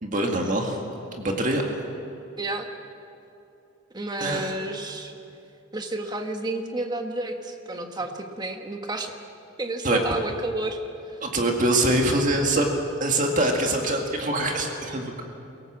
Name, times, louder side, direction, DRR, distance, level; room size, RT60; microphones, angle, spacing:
voice 1, 0.0-0.8 1.2-1.6 4.2-4.5 9.8-10.0 11.2-12.7 13.0-15.2, right 1 dB, 40° right, 2 dB, 2.0 m, -24 dB
voice 2, 2.4-2.7 3.9-5.1 5.7-9.1 9.6-10.8, right 2 dB, 20° right, 4 dB, 1.5 m, -31 dB
23.0 x 18.0 x 7.5 m, 2.7 s
head